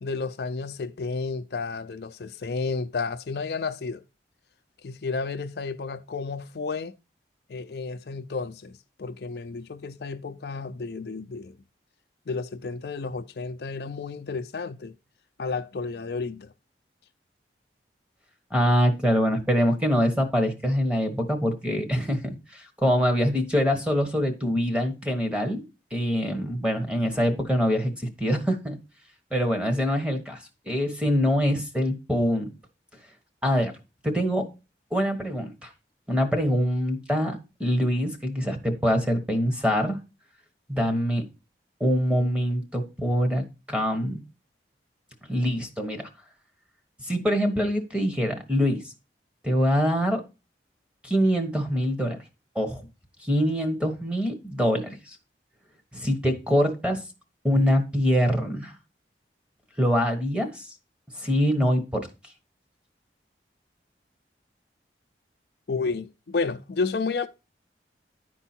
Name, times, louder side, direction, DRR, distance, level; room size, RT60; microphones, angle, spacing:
voice 1, 0.0-4.0 4.8-6.9 7.5-11.5 12.3-14.9 15.4-16.5 65.7-67.3, left 4 dB, 65° left, 0.5 m, -31 dB
voice 2, 18.5-25.6 25.9-28.8 29.3-30.4 30.7-32.5 33.4-33.7 34.0-34.5 34.9-35.7 36.1-40.0 40.7-41.2 41.8-44.2 45.3-46.0 47.0-48.8 49.4-50.2 51.0-52.2 52.5-52.9 53.2-55.0 55.9-57.0 57.4-58.8 59.8-60.7 61.1-62.1, equal, 5° right, 1.1 m, -24 dB
11.0 x 4.5 x 4.3 m
head